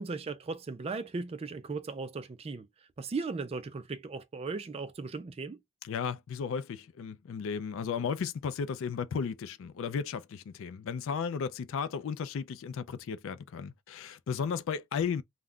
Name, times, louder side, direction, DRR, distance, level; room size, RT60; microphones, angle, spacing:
voice 1, 0.0-2.7 3.0-5.6, right 4 dB, 25° right, 0.3 m, -37 dB
voice 2, 5.8-15.2, left 6 dB, 60° left, 0.3 m, -34 dB
2.3 x 2.1 x 3.6 m
head